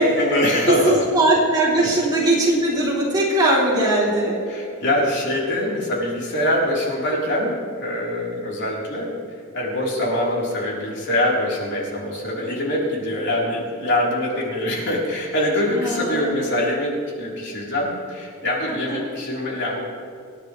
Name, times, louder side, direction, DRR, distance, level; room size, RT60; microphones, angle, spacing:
voice 1, 0.0-1.0 1.8-2.1 4.5-9.1 9.5-19.8, left 1 dB, 55° left, -4 dB, 4.1 m, -24 dB
voice 2, 0.7-4.4 15.7-16.5 18.7-19.0, right 1 dB, 20° right, -6 dB, 3.5 m, -20 dB
27.0 x 10.5 x 3.4 m, 2.4 s
head